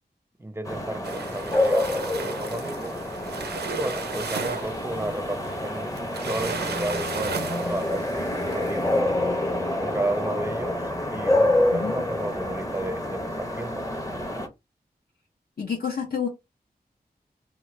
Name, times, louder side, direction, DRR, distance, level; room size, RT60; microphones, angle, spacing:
voice 1, 0.4-2.9 3.6-9.1 9.8-13.9, right 1 dB, 15° right, 0.5 m, -33 dB
sound 1, 0.6-14.5, left 1 dB, 20° left, 0.7 m, -27 dB
sound 2, 1.0-8.9, right 5 dB, 80° right, 0.5 m, -35 dB
voice 2, 15.6-16.3, left 6 dB, 65° left, 0.7 m, -28 dB
2.9 x 2.1 x 3.1 m
wide cardioid pair, 60°, 17 cm